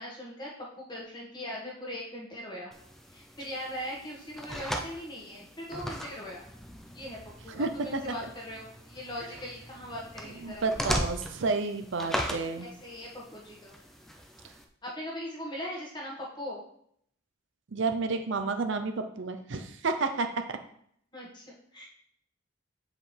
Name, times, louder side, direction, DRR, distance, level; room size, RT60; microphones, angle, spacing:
voice 1, 0.0-2.7 3.1-6.4 6.9-7.2 7.4-10.6 12.6-13.7 14.8-16.6 21.1-21.9, equal, 20° left, -4 dB, 1.5 m, -40 dB
sound 1, 2.7-14.6, equal, ahead, 0.4 m, -39 dB
voice 2, 7.5-8.0 10.4-12.7 17.7-20.3, right 3 dB, 65° right, 7 dB, 0.6 m, -30 dB
7.8 x 4.8 x 3.3 m, 0.69 s
head